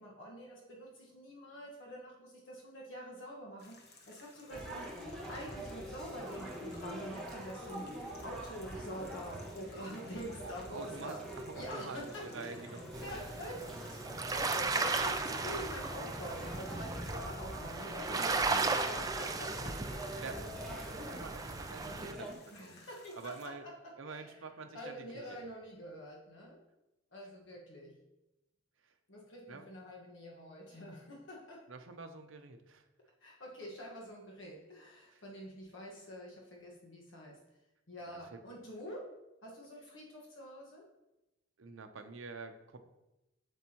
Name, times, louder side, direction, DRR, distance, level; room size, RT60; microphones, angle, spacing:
voice 1, 0.0-4.9 5.3-7.9 8.2-11.2 11.6-12.7 13.0-14.0 14.3-20.7 22.5-24.4 24.7-26.6 27.1-28.0 29.1-31.7 33.2-37.4 37.9-40.9, equal, 70° left, -2 dB, 1.4 m, -46 dB
sound 1, 3.6-23.5, left 3 dB, 55° left, 1.2 m, -60 dB
sound 2, 4.5-22.4, right 1 dB, ahead, 1.5 m, -45 dB
voice 2, 10.4-12.9 20.1-20.5 20.9-22.8 23.1-23.7 24.0-25.4 28.8-28.9 29.5-29.7 31.7-32.9 35.1-35.2 38.0-38.4 41.6-42.8, right 4 dB, 75° right, 7 dB, 0.7 m, -47 dB
sound 3, 12.9-22.1, right 3 dB, 20° right, 0.4 m, -36 dB
8.1 x 7.1 x 2.9 m, 0.96 s
head